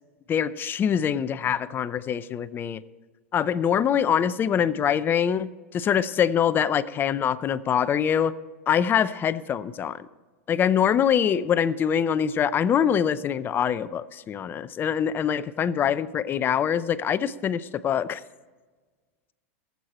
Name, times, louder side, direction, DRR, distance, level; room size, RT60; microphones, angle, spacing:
voice 1, 0.3-2.8 3.3-8.3 8.7-10.1 10.5-18.2, left 8 dB, 30° left, 16 dB, 0.6 m, -24 dB
20.0 x 8.2 x 4.3 m, 1.4 s
hypercardioid pair, 105°, 7 cm